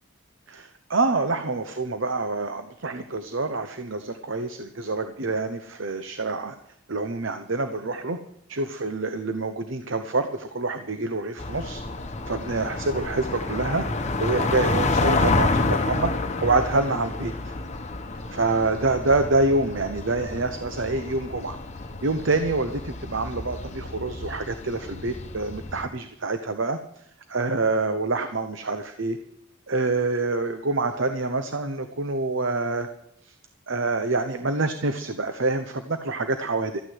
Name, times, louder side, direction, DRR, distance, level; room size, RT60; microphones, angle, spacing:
voice 1, 0.5-6.6 6.9-8.2 8.5-11.8 12.3-13.8 14.2-16.1 16.4-17.5 18.3-21.6 22.0-27.0 27.3-29.2 29.7-32.9 33.2-33.3 33.7-36.8, right 3 dB, 60° right, 8 dB, 0.9 m, -26 dB
sound 1, 11.4-25.8, left 3 dB, 30° left, 1.1 m, -29 dB
13.5 x 9.5 x 8.0 m, 0.74 s
head